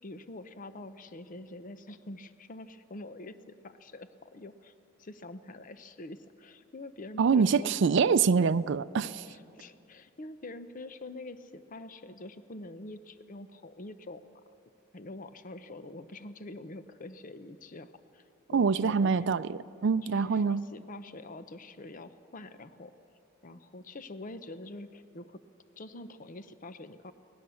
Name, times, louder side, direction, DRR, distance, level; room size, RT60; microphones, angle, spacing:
voice 1, 0.0-4.7 5.0-7.8 9.3-14.3 14.9-18.2 18.5-19.3 20.0-22.9 23.4-25.4 25.8-27.1, left 2 dB, 45° left, 11 dB, 0.8 m, -45 dB
voice 2, 7.2-9.3 18.5-20.6, right 5 dB, 65° right, 14 dB, 0.4 m, -25 dB
24.0 x 18.0 x 7.0 m, 2.6 s
head